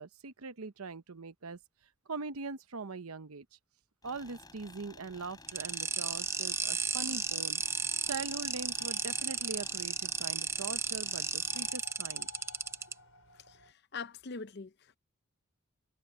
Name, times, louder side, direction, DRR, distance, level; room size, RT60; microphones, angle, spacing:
voice 1, 0.0-1.6 2.1-3.5 4.0-7.6 8.0-12.3, right 4 dB, 85° right, 0.9 m, -42 dB
sound 1, 4.0-11.7, left 3 dB, 20° left, 6.9 m, -55 dB
sound 2, 5.5-12.9, right 5 dB, 10° right, 0.4 m, -34 dB
sound 3, 7.6-13.7, left 5 dB, 70° left, 4.4 m, -54 dB
voice 2, 13.3-15.0, left 4 dB, 50° left, 0.6 m, -44 dB
head